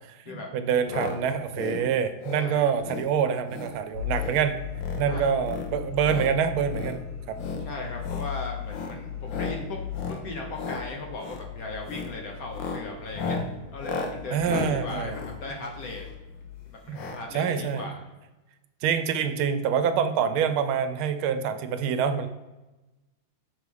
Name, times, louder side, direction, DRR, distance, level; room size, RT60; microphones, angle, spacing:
voice 1, 0.3-4.6 5.0-7.0 7.3-7.4 14.3-15.2 16.9-17.0 17.3-17.9 18.8-22.3, right 7 dB, 85° right, 10 dB, 1.4 m, -26 dB
sound 1, 0.9-1.2 1.5-1.8 2.2-2.5 2.8-3.1 3.5-3.8 4.1-4.4 4.7-5.0 5.4-6.3 6.7-7.0 7.3-7.6 8.0-8.3 8.7-9.0 9.3-9.6 9.9-10.2 10.5-10.8 11.2-11.5 11.8-12.1 12.5-16.2 16.9-17.2 17.5-17.6 17.8-17.9, left 4 dB, 70° left, 1.4 m, -34 dB
voice 2, 2.4-2.7 5.0-5.3 7.6-13.4 13.7-16.0 16.7-18.1, left 2 dB, 55° left, 1 dB, 1.1 m, -38 dB
sound 2, 3.9-16.8, left 9 dB, 90° left, 0.6 m, -38 dB
6.1 x 3.2 x 5.2 m, 1.1 s
omnidirectional pair, 2.3 m